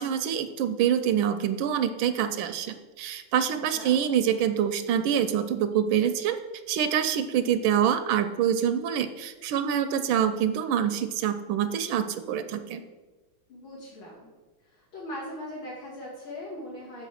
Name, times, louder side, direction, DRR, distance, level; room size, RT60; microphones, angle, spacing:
voice 1, 0.0-6.4 6.7-12.8, right 9 dB, 80° right, 9 dB, 1.3 m, -26 dB
voice 2, 3.5-4.0 13.5-14.3 14.7-17.1, left 1 dB, 80° left, -6 dB, 2.5 m, -40 dB
6.9 x 4.9 x 6.3 m, 1.2 s
omnidirectional pair, 2.2 m